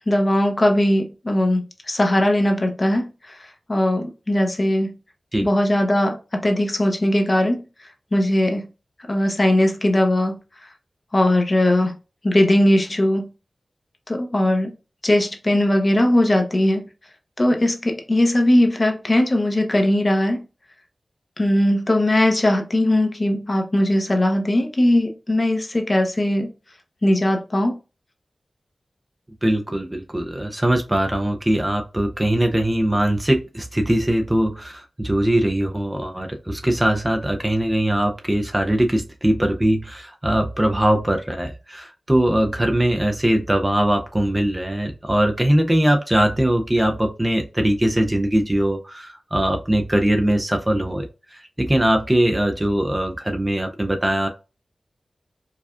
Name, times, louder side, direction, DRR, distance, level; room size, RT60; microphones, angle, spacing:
voice 1, 0.1-5.0 5.4-7.6 8.1-8.7 9.1-10.4 11.1-12.0 12.2-13.3 14.1-14.7 15.0-16.9 17.4-20.4 21.4-26.5 27.0-27.8, left 1 dB, 35° left, 0.7 m, -19 dB
voice 2, 29.4-54.3, right 1 dB, 15° right, 0.5 m, -21 dB
4.8 x 2.3 x 2.4 m
wide cardioid pair, 90°, 0 cm